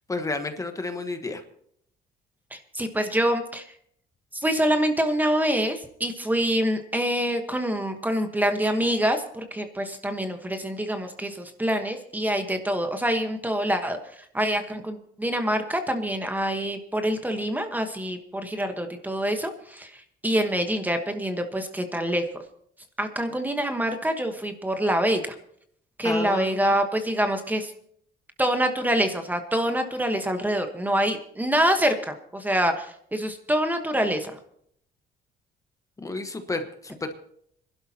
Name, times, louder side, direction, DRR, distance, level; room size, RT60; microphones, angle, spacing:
voice 1, 0.1-1.4 26.0-26.7 36.0-37.2, left 3 dB, 20° left, 7 dB, 1.2 m, -31 dB
voice 2, 2.5-3.7 4.3-22.2 23.0-25.4 26.0-27.7 28.4-34.4, equal, 10° right, 6 dB, 1.2 m, -26 dB
25.5 x 12.0 x 2.9 m, 0.66 s
cardioid pair, 110°, 17 cm